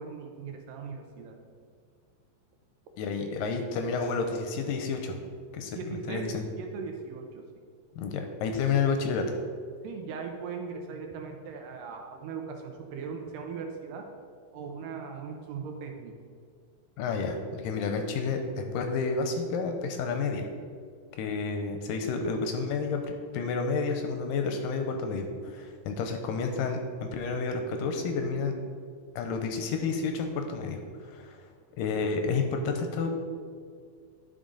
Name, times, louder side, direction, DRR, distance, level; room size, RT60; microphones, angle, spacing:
voice 1, 0.0-1.3 5.8-7.3 9.8-14.1 14.5-16.1, right 5 dB, 75° right, 3 dB, 2.2 m, -39 dB
voice 2, 3.0-5.2 5.5-5.8 6.1-6.5 8.0-9.4 17.0-20.5 21.2-28.5 29.2-31.4 31.8-33.1, left 4 dB, 80° left, 5 dB, 2.1 m, -30 dB
11.0 x 5.2 x 3.8 m, 2.1 s
omnidirectional pair, 4.2 m